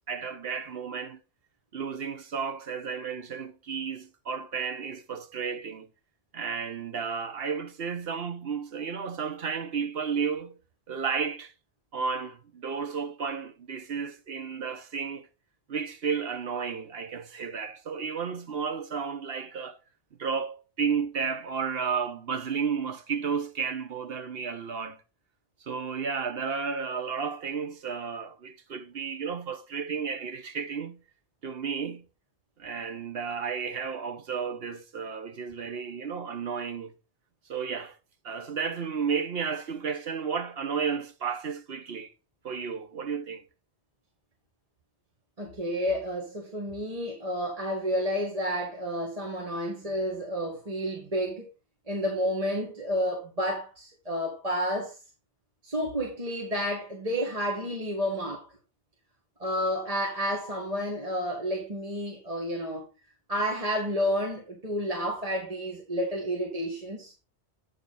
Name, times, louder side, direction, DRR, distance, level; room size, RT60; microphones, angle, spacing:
voice 1, 0.1-1.2 1.7-5.9 6.3-10.6 10.9-11.5 11.9-15.3 15.7-19.8 20.2-25.0 25.6-31.0 31.4-32.0 32.6-36.9 37.5-38.0 38.2-42.1 42.4-43.4, right 6 dB, 60° right, 1.1 m, -32 dB
voice 2, 45.4-51.5 51.9-55.0 55.6-58.5 59.4-62.8 63.3-67.1, equal, 30° right, 1.8 m, -30 dB
8.5 x 6.6 x 4.0 m
omnidirectional pair, 1.2 m